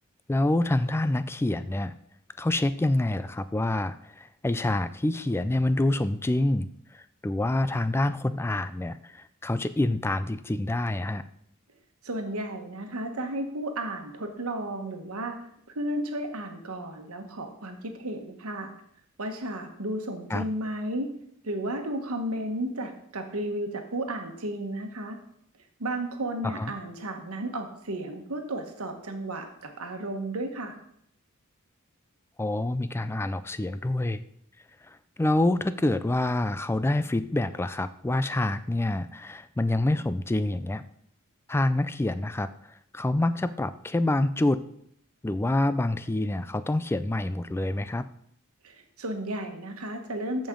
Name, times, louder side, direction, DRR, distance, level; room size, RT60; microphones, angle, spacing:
voice 1, 0.3-1.9 2.4-6.7 6.9-11.3 20.3-20.5 26.4-26.7 32.4-34.2 34.8-40.8 41.5-42.5 42.9-44.6 45.2-48.1, left 1 dB, 10° left, 13 dB, 0.3 m, -27 dB
voice 2, 12.0-15.4 15.7-18.7 19.2-21.1 21.4-25.2 25.8-30.7 48.6-50.5, right 1 dB, 85° right, 5 dB, 1.3 m, -33 dB
14.0 x 5.3 x 3.8 m, 0.69 s
head